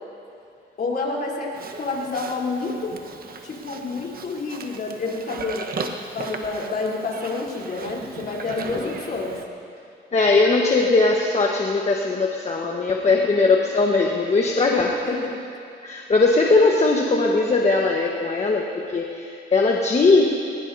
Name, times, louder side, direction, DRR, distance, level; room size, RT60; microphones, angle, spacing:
voice 1, 0.8-2.9 3.4-9.4 15.0-15.3, left 3 dB, 50° left, -4 dB, 3.8 m, -29 dB
Livestock farm animals working animals, 1.5-9.4, right 4 dB, 50° right, 1.3 m, -37 dB
voice 2, 8.6-8.9 10.1-14.9 15.8-18.7 18.9-20.2, left 3 dB, 35° left, -1 dB, 1.4 m, -19 dB
21.5 x 21.0 x 2.8 m, 2.5 s
cardioid pair, 90°, 20 cm